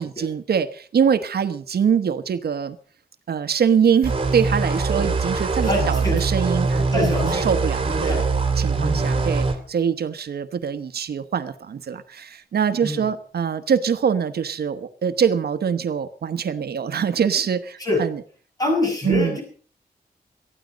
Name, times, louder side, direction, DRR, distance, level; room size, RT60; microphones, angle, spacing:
voice 1, 0.0-2.8 3.3-8.2 8.6-18.2 19.0-19.4, right 7 dB, 75° right, 11 dB, 1.1 m, -23 dB
sound 1, 4.0-9.5, right 4 dB, 35° right, 2.3 m, -22 dB
voice 2, 5.6-6.2 6.7-7.4 7.8-8.2 8.7-9.2 12.8-13.1 17.8-18.0 18.6-19.4, left 1 dB, 20° left, 1 dB, 7.5 m, -25 dB
19.0 x 13.5 x 5.1 m, 0.43 s
wide cardioid pair, 180°, 16 cm